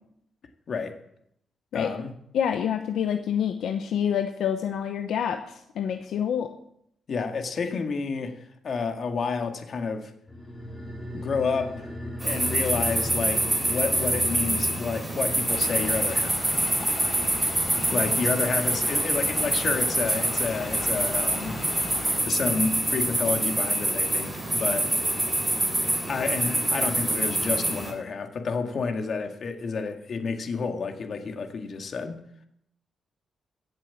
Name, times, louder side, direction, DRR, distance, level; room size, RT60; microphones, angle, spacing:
voice 1, 1.7-2.1 7.1-8.4 8.6-10.1 11.1-11.9 12.2-16.6 17.9-21.6 22.3-24.9 26.1-32.2, left 4 dB, 55° left, 5 dB, 1.9 m, -30 dB
voice 2, 2.3-6.5, left 8 dB, 85° left, 6 dB, 0.8 m, -27 dB
sound 1, 10.3-21.1 21.4-21.5, equal, 10° left, 3.2 m, -39 dB
sound 2, 12.2-27.9, right 1 dB, 15° right, 3.8 m, -26 dB
sound 3, 15.5-22.2, left 2 dB, 35° left, 3.7 m, -39 dB
16.0 x 7.5 x 7.1 m, 0.74 s
cardioid pair, 100°, 0 cm